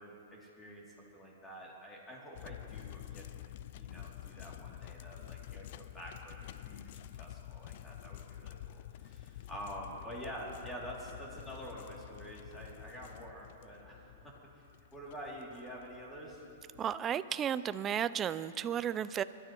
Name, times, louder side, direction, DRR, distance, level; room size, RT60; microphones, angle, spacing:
voice 1, 0.0-3.4 3.7-14.7 14.9-16.4, equal, 10° left, -4 dB, 2.7 m, -47 dB
sound 1, 2.3-17.0, left 12 dB, 55° left, 0.3 m, -49 dB
voice 2, 16.8-19.2, right 9 dB, 20° right, 15 dB, 0.3 m, -33 dB
25.0 x 12.0 x 3.0 m, 2.7 s
hypercardioid pair, 145°, 0 cm